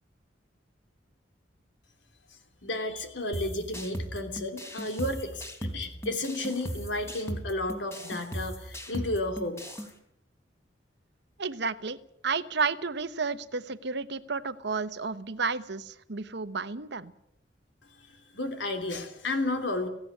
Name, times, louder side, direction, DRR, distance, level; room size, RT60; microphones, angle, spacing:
voice 1, 2.6-9.6 18.1-19.9, left 2 dB, 75° left, 6 dB, 3.3 m, -32 dB
sound 1, 3.3-9.9, equal, 15° left, 3.3 m, -38 dB
voice 2, 11.4-12.0 12.2-17.1, right 4 dB, 65° right, 13 dB, 1.0 m, -32 dB
18.0 x 16.0 x 9.8 m, 0.79 s
head